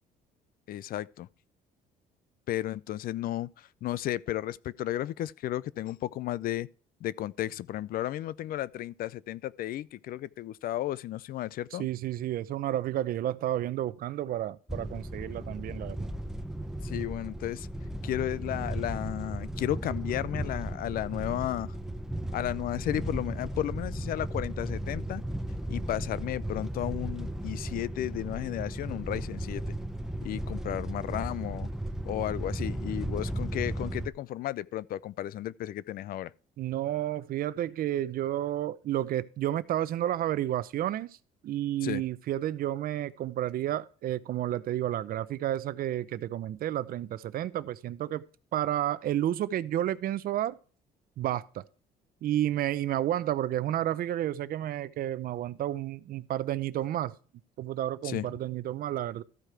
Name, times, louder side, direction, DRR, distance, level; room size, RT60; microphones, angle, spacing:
voice 1, 0.7-1.3 2.5-6.7 7.0-11.9 16.8-17.7 18.0-21.7 22.3-25.2 25.7-29.6 30.2-31.7 32.1-36.3 41.8-42.0 58.0-58.2, left 13 dB, 60° left, 0.4 m, -33 dB
voice 2, 11.7-16.1 36.6-41.2 41.4-48.2 48.5-50.6 51.2-51.6 52.2-57.2 57.6-59.2, right 12 dB, 60° right, 0.6 m, -31 dB
sound 1, 14.7-34.1, right 1 dB, 5° right, 0.7 m, -35 dB
13.5 x 4.9 x 4.5 m
cardioid pair, 110°, 17 cm